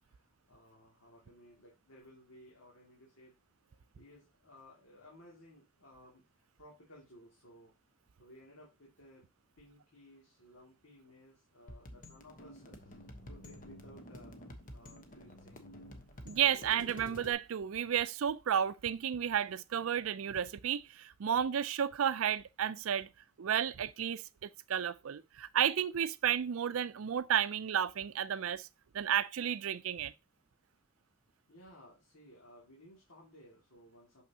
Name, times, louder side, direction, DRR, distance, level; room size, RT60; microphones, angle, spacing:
voice 1, 0.0-3.4 3.6-7.7 8.2-9.2 9.6-15.7 31.5-34.2, left 1 dB, 90° left, 2.3 m, -58 dB
sound 1, 11.7-17.3, equal, 40° left, 1.1 m, -50 dB
voice 2, 16.3-23.1 23.4-28.7 28.9-30.1, right 9 dB, 80° right, 0.4 m, -32 dB
6.3 x 5.9 x 2.8 m
head